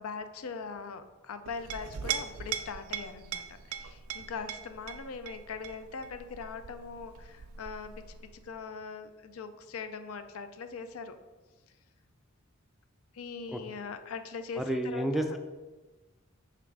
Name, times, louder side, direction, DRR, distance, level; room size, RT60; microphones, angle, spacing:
voice 1, 0.0-7.9 8.4-11.2 13.1-15.4, left 5 dB, 85° left, 10 dB, 0.5 m, -41 dB
Chink clink, 1.5-8.6, right 8 dB, 90° right, 0.5 m, -40 dB
voice 2, 14.6-15.4, right 1 dB, ahead, 5 dB, 0.3 m, -30 dB
5.8 x 3.4 x 4.8 m, 1.2 s
head